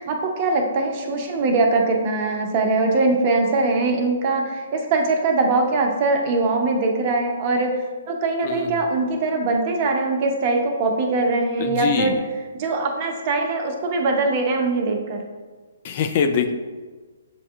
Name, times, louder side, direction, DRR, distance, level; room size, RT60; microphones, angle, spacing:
voice 1, 0.0-7.8 8.1-12.1 12.6-15.2, right 3 dB, 40° right, 2 dB, 0.7 m, -22 dB
voice 2, 8.4-8.8 11.6-12.2 15.8-16.5, left 6 dB, 45° left, 6 dB, 0.4 m, -23 dB
7.4 x 2.6 x 2.4 m, 1.4 s
hypercardioid pair, 140°, 0 cm